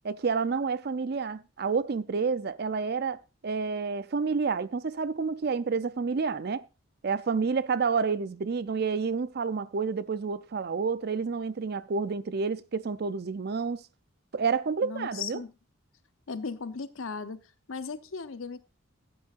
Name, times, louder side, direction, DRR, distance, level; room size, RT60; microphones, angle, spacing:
voice 1, 0.0-3.2 3.4-6.6 7.0-13.8 14.3-15.4, right 5 dB, 50° right, 0.5 m, -29 dB
voice 2, 14.8-15.5 16.3-17.4 17.7-18.6, left 5 dB, 80° left, 0.8 m, -36 dB
15.0 x 8.5 x 2.5 m
head